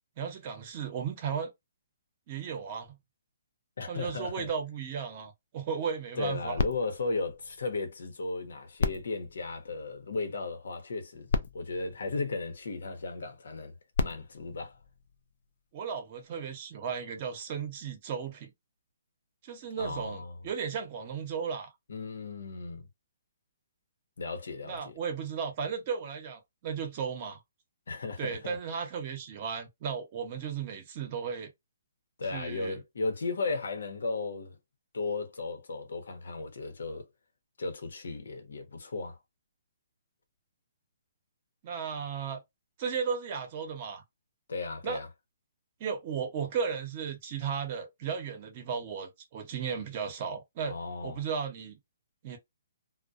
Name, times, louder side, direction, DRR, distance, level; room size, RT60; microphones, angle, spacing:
voice 1, 0.2-1.5 2.3-2.9 3.9-6.6 15.7-18.5 19.4-21.7 24.6-27.4 28.2-31.5 32.3-32.8 41.6-42.4 42.8-44.0 44.8-45.0 45.8-50.8 51.0-51.8 52.2-52.4, right 6 dB, 35° right, 0.8 m, -35 dB
voice 2, 3.8-4.5 6.1-11.3 11.5-13.7 14.0-14.8 19.8-20.4 21.9-22.9 24.2-24.9 27.9-28.6 32.2-34.5 34.9-37.1 37.6-39.2 44.5-45.1 50.6-51.2, left 3 dB, 75° left, 0.8 m, -35 dB
sound 1, 6.6-8.2 8.7-10.3 11.0-11.1 11.3-12.9 13.7-15.5 16.2-16.3, left 4 dB, 60° left, 0.4 m, -35 dB
2.2 x 2.1 x 2.5 m
hypercardioid pair, 150°, 0 cm